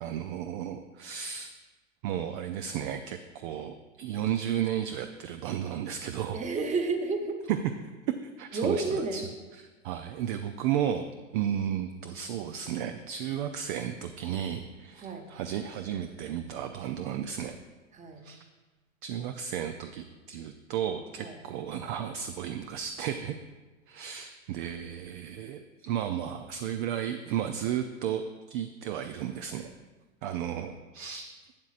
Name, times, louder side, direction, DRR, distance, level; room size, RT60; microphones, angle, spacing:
voice 1, 0.0-1.5 2.0-6.4 7.5-7.6 8.1-9.2 9.8-11.1 11.3-17.6 18.2-18.4 19.0-23.4 23.9-29.7 30.2-31.3, right 9 dB, 40° right, 8 dB, 0.4 m, -33 dB
voice 2, 6.3-7.5 8.5-9.3 15.0-15.3 17.9-18.2 21.2-21.4 30.5-30.7, right 3 dB, 20° right, 4 dB, 1.0 m, -31 dB
11.5 x 8.1 x 2.5 m, 1.3 s
hypercardioid pair, 105°, 39 cm